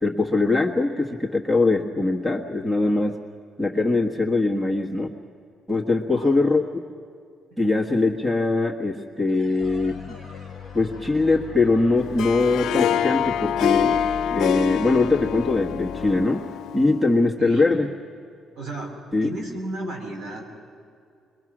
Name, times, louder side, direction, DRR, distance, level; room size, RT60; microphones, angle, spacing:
voice 1, 0.0-3.2 3.6-5.1 5.7-6.6 7.6-10.2 10.7-14.0 14.3-16.4 16.7-17.9 19.1-19.3, left 3 dB, 10° right, 2 dB, 1.5 m, -22 dB
voice 2, 6.1-6.5 17.4-18.0 18.5-18.9 19.2-20.6, right 1 dB, 80° right, -1 dB, 6.5 m, -34 dB
sound 1, 9.2-14.5, equal, 45° right, 5.4 m, -48 dB
sound 2, 9.6-16.3, left 7 dB, 45° left, 0.7 m, -40 dB
Harp, 12.0-17.2, left 9 dB, 80° left, 0.6 m, -26 dB
29.0 x 22.5 x 6.1 m, 2.4 s
cardioid pair, 165°, 0 cm